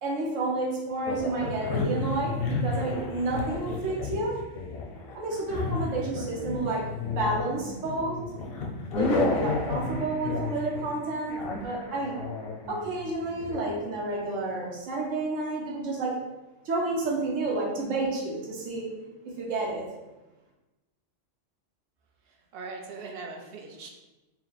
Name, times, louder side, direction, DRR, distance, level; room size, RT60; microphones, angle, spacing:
voice 1, 0.0-4.3 5.1-8.2 8.9-12.1 12.7-16.2 16.6-19.1 19.4-19.8, right 2 dB, 75° right, -3 dB, 1.2 m, -30 dB
sound 1, 1.1-13.7, left 3 dB, 60° left, 0.7 m, -32 dB
voice 2, 22.3-23.9, right 3 dB, 60° right, 2 dB, 0.7 m, -41 dB
4.4 x 2.1 x 4.0 m, 1.0 s
omnidirectional pair, 1.3 m